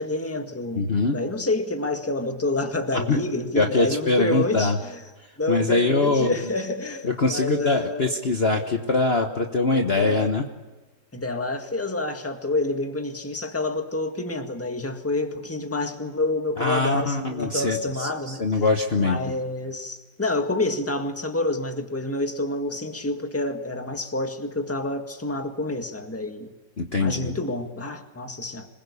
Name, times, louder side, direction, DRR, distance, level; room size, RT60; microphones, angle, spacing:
voice 1, 0.0-5.0 5.4-8.2 9.9-10.3 11.1-18.4 19.0-26.5 27.0-28.7, left 2 dB, 10° left, 1.7 m, -28 dB
voice 2, 0.7-1.2 2.9-3.2 3.5-4.8 5.5-6.3 7.0-10.4 16.6-18.1 18.4-19.2 26.8-27.4, left 3 dB, 35° left, 1.4 m, -23 dB
26.5 x 21.0 x 8.5 m
omnidirectional pair, 2.0 m